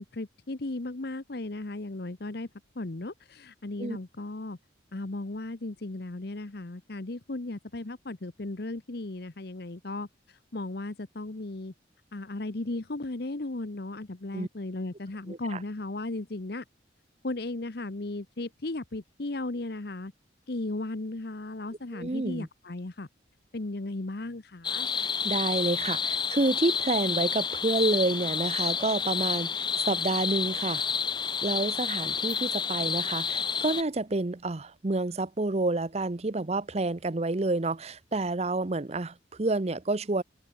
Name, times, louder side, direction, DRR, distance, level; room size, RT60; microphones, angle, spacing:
voice 1, 0.0-2.5 2.8-4.6 4.9-10.1 10.5-11.7 12.1-16.6 17.2-20.1 20.5-23.1 23.5-24.9, left 2 dB, 55° left, 1.0 m, -36 dB
voice 2, 15.3-15.6 21.9-22.5 24.9-30.8 31.4-40.2, right 2 dB, 35° right, 0.7 m, -29 dB
sound 1, 24.6-33.8, left 6 dB, 25° left, 1.1 m, -30 dB
open air
head